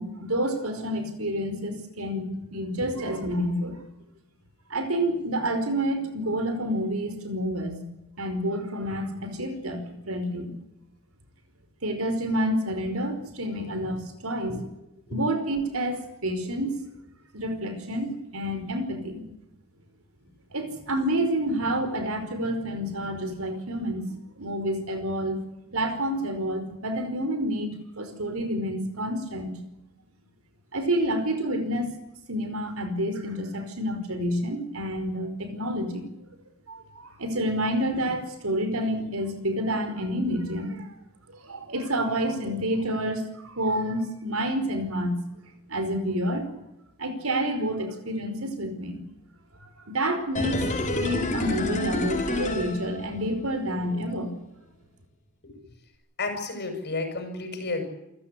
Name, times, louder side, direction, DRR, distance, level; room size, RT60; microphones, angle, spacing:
voice 1, 0.0-2.2 2.5-3.8 4.7-7.8 8.2-10.5 11.8-14.6 15.1-16.7 17.3-19.2 20.5-25.4 25.7-29.5 30.7-31.9 32.3-36.1 36.7-40.9 41.4-45.1 45.7-46.5 47.0-49.0 49.6-50.6 50.9-54.3, equal, 70° right, 9 dB, 5.2 m, -29 dB
sound 1, 50.3-53.5 53.8-53.9, left 1 dB, 35° left, 5.2 m, -29 dB
voice 2, 56.2-57.8, left 3 dB, 50° left, 7 dB, 6.8 m, -32 dB
28.0 x 15.5 x 8.5 m, 0.92 s
head